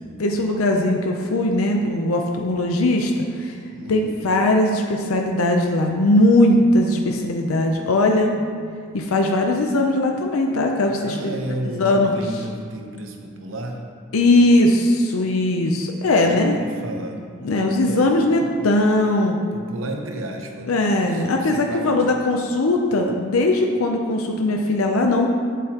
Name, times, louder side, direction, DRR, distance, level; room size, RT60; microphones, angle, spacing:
voice 1, 0.2-3.6 3.9-8.3 8.9-11.3 11.8-12.1 14.1-16.5 17.4-19.4 20.7-25.3, left 1 dB, 85° left, 2 dB, 0.6 m, -19 dB
voice 2, 3.7-4.2 10.9-13.8 16.0-18.7 19.5-22.0, right 1 dB, 70° right, 3 dB, 0.8 m, -33 dB
8.0 x 7.7 x 2.9 m, 2.2 s
head